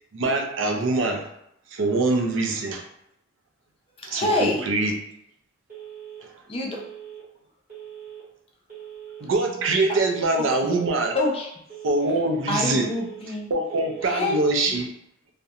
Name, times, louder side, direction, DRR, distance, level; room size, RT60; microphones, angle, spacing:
voice 1, 0.1-1.3 1.7-2.8 4.1-4.9 9.2-11.1 11.8-12.9 13.5-14.9, right 2 dB, 75° right, 2 dB, 0.4 m, -23 dB
voice 2, 4.0-4.7 6.5-6.8 10.4-10.7 11.1-11.5 12.5-13.5 14.0-14.3 14.7-14.8, left 2 dB, 30° left, -1 dB, 0.5 m, -26 dB
Telephone, 5.7-6.2 6.7-7.2 7.7-8.2 8.7-9.2 9.7-10.2 10.7-11.2 11.7-12.2 12.7-13.2 13.7-14.2, right 10 dB, 45° right, 0.9 m, -41 dB
2.4 x 2.1 x 2.7 m, 0.74 s
head